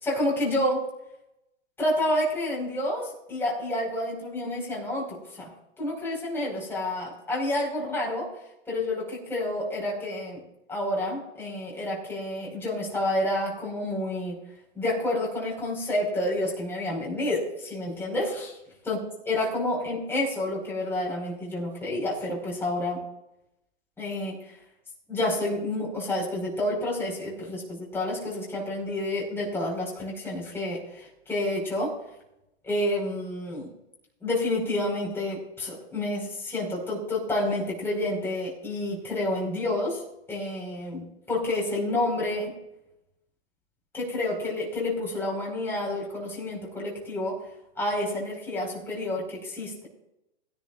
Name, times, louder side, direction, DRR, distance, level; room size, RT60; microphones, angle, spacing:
voice 1, 0.0-0.8 1.8-5.5 5.8-8.3 8.7-10.4 10.7-14.4 14.8-18.6 18.9-19.0 19.3-23.0 24.0-24.4 25.1-31.9 32.6-33.7 34.2-40.0 40.3-42.5 43.9-47.4 47.8-49.9, left 1 dB, 5° left, -3 dB, 5.1 m, -29 dB
21.0 x 10.5 x 2.6 m, 0.86 s
hypercardioid pair, 140°, 33 cm